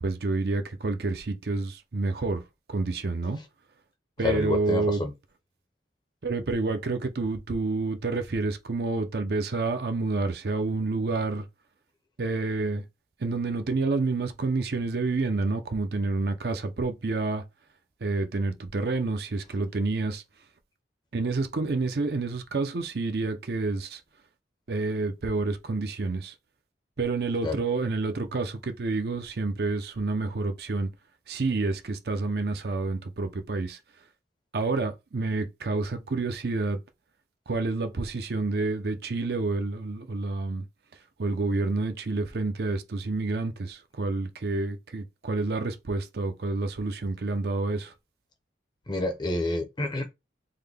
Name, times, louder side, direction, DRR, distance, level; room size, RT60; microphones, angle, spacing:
voice 1, 0.0-2.4 2.7-3.4 4.2-5.0 6.2-11.4 12.2-12.8 13.2-17.4 18.0-20.2 21.1-24.0 24.7-26.3 27.0-30.9 31.3-33.8 34.5-36.8 37.5-40.7 41.2-47.9, right 3 dB, 55° right, 0.5 m, -28 dB
voice 2, 4.2-5.1 27.4-27.6 48.9-50.1, left 2 dB, 25° left, 0.6 m, -28 dB
3.7 x 2.2 x 3.3 m
head